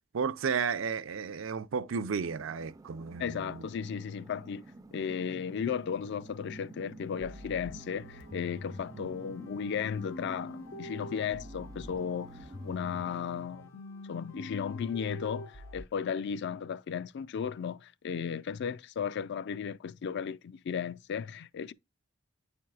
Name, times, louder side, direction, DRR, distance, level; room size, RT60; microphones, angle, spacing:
voice 1, 0.1-3.6 9.0-9.1, right 6 dB, 80° right, 0.5 m, -33 dB
sound 1, 2.2-13.4, right 2 dB, 20° right, 0.3 m, -51 dB
voice 2, 3.2-4.7 4.9-13.7 14.1-21.7, left 7 dB, 60° left, 0.3 m, -35 dB
sound 2, 7.2-15.8, left 1 dB, 85° left, 1.1 m, -45 dB
9.3 x 4.4 x 2.3 m
head